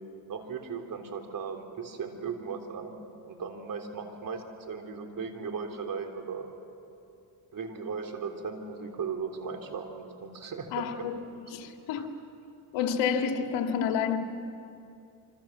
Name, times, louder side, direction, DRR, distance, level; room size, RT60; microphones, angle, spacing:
voice 1, 0.3-3.0 3.2-6.5 7.5-11.1 12.0-12.1, right 5 dB, 45° right, 3 dB, 3.6 m, -37 dB
voice 2, 10.7-11.2 11.5-12.1 12.7-14.2, left 7 dB, 80° left, 4 dB, 2.4 m, -29 dB
27.0 x 25.5 x 7.6 m, 2.6 s
cardioid pair, 100°, 45 cm